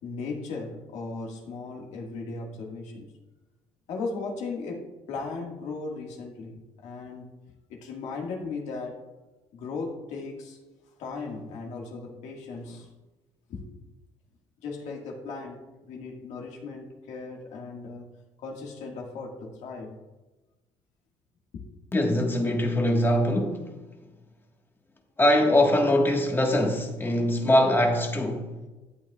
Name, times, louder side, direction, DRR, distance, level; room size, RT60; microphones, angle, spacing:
voice 1, 0.0-3.1 3.9-7.3 7.7-9.0 9.5-10.6 11.0-12.9 13.5-13.7 14.6-18.1 18.4-20.0 21.5-21.6, left 4 dB, 75° left, 1.8 m, -37 dB
voice 2, 21.9-23.7 25.2-28.5, left 1 dB, 20° left, 1.5 m, -22 dB
12.5 x 8.4 x 2.4 m
cardioid pair, 95°, 12 cm